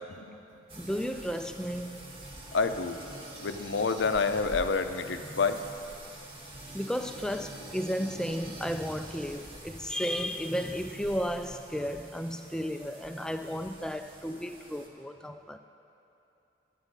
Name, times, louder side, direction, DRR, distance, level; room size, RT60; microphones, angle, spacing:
sound 1, 0.7-14.9, right 1 dB, 30° right, 1.3 m, -46 dB
voice 1, 0.8-2.0 6.7-15.6, equal, 5° left, 8 dB, 0.3 m, -33 dB
voice 2, 2.5-3.0 3.4-5.6, left 4 dB, 75° left, 8 dB, 0.5 m, -28 dB
11.5 x 9.1 x 5.2 m, 2.9 s
head